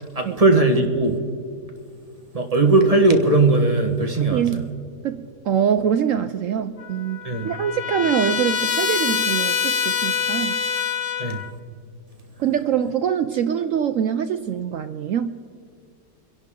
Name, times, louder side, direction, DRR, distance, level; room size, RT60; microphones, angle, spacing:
voice 1, 0.1-1.2 2.3-4.6 7.2-7.5 11.2-11.4, right 2 dB, 25° right, 2 dB, 1.2 m, -18 dB
voice 2, 4.2-4.7 5.0-10.6 12.4-15.3, right 8 dB, 70° right, 10 dB, 0.8 m, -24 dB
Trumpet, 6.8-11.5, left 7 dB, 55° left, 1.1 m, -25 dB
25.0 x 11.0 x 3.7 m, 2.4 s
omnidirectional pair, 1.8 m